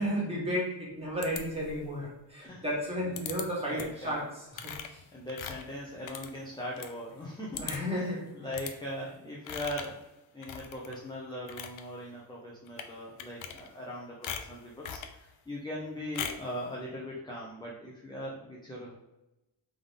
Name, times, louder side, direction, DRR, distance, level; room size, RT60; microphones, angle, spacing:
voice 1, 0.0-5.0 7.6-8.5, equal, 15° right, -5 dB, 1.5 m, -33 dB
sound 1, 1.2-1.9 3.2-3.4 3.8-4.1 4.5-6.9 7.2-7.3 7.5-8.0 8.5-8.7 9.4-10.0 10.4-11.0 11.3-11.8 12.7-12.9 13.2-13.9 14.2-15.2 16.1-16.5, left 8 dB, 90° left, 0.6 m, -40 dB
voice 2, 3.7-4.2 5.1-7.7 7.9-10.0 10.3-19.0, equal, 10° left, -3 dB, 0.5 m, -40 dB
3.7 x 3.6 x 3.5 m, 0.96 s
wide cardioid pair, 175°, 46 cm